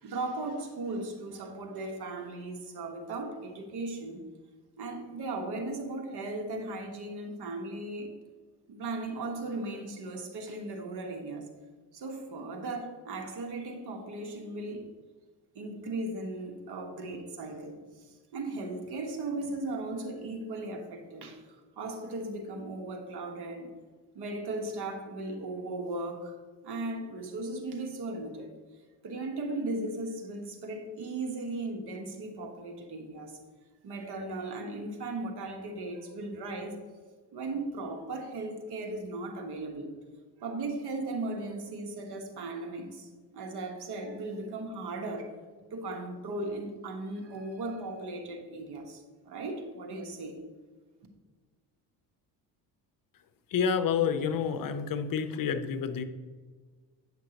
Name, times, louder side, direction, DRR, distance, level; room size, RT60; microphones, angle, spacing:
voice 1, 0.0-4.2 4.8-8.1 8.7-11.5 11.9-14.9 15.5-21.4 21.8-23.7 24.1-28.6 29.0-33.4 33.8-36.8 37.3-39.9 40.4-45.4 45.7-50.4, right 2 dB, 65° right, 1.4 m, -37 dB
voice 2, 53.5-56.0, left 7 dB, 50° left, 0.7 m, -29 dB
8.9 x 5.9 x 2.9 m
supercardioid pair, 80°, 43 cm